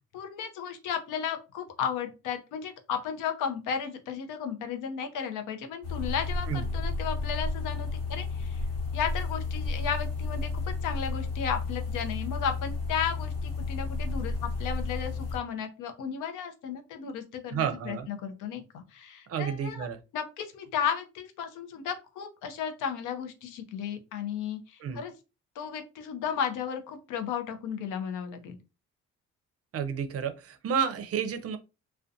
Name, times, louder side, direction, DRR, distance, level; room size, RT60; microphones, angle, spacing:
voice 1, 0.1-8.6 8.9-19.9 20.1-25.1 25.6-28.6, left 7 dB, 90° left, 7 dB, 0.6 m, -34 dB
sound 1, 5.8-15.4, left 3 dB, 55° left, 1.1 m, -32 dB
voice 2, 17.5-18.1 19.3-20.0 24.8-25.0 29.7-31.6, right 7 dB, 50° right, 9 dB, 0.5 m, -31 dB
2.4 x 2.2 x 2.5 m, 0.29 s
cardioid pair, 90°, 30 cm